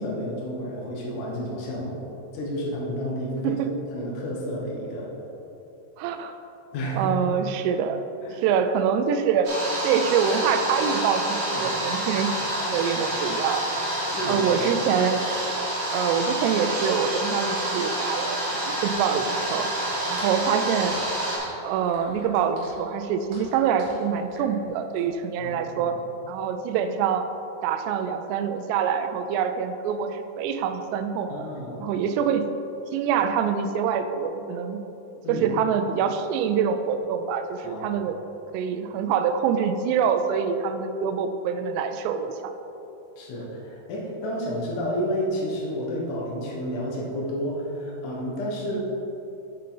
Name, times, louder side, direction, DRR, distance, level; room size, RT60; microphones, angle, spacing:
voice 1, 0.0-2.0 2.3-3.6 3.9-5.1 6.7-7.1 8.2-8.4 11.5-11.7 14.1-14.7 25.4-26.0 31.3-31.9 35.2-35.5 37.6-38.0 43.2-48.8, equal, 70° left, -3 dB, 1.9 m, -31 dB
voice 2, 6.0-6.4 7.0-8.1 8.4-9.5 9.8-13.6 14.3-15.2 15.9-19.7 20.1-21.0 21.6-26.0 26.3-27.2 27.6-31.5 31.8-32.5 32.9-34.8 35.3-38.2 38.5-42.5 48.7-48.8, right 7 dB, 90° right, 8 dB, 2.4 m, -25 dB
sound 1, 9.4-21.4, right 1 dB, 50° right, 1.8 m, -28 dB
sound 2, 20.1-25.0, right 2 dB, 75° right, 1.6 m, -44 dB
7.9 x 6.7 x 3.9 m, 2.9 s
omnidirectional pair, 5.4 m